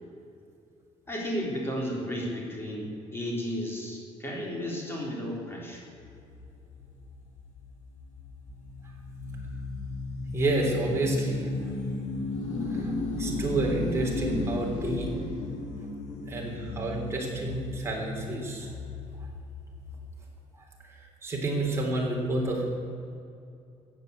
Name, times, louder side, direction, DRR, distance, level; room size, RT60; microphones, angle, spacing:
voice 1, 1.1-5.8, equal, 20° left, -2 dB, 3.7 m, -33 dB
sound 1, 6.0-20.2, left 2 dB, 70° left, 3.1 m, -35 dB
voice 2, 10.3-11.5 12.7-12.9 13.2-15.1 16.3-18.7 21.2-22.7, right 2 dB, 20° right, -2 dB, 3.5 m, -29 dB
15.0 x 8.8 x 8.1 m, 2.6 s
cardioid pair, 155°, 13 cm